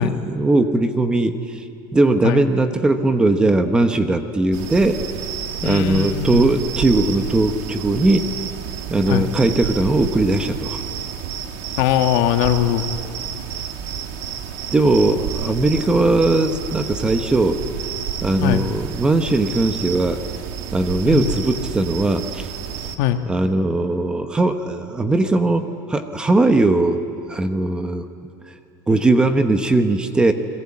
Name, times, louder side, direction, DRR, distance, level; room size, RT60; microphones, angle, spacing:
voice 1, 0.0-1.6 1.9-5.0 5.6-8.3 8.9-10.8 14.7-17.6 18.2-20.2 20.7-22.5 23.3-27.0 27.3-28.1 28.5-28.6 28.9-30.3, right 2 dB, 10° right, 8 dB, 0.9 m, -19 dB
sound 1, 4.5-23.0, right 8 dB, 60° right, 1.7 m, -30 dB
voice 2, 5.6-6.5 9.1-9.3 11.8-12.8 18.4-18.6 21.0-21.2 23.0-23.2, left 11 dB, 55° left, 7 dB, 1.5 m, -20 dB
30.0 x 21.0 x 8.7 m, 2.5 s
cardioid pair, 175°, 10 cm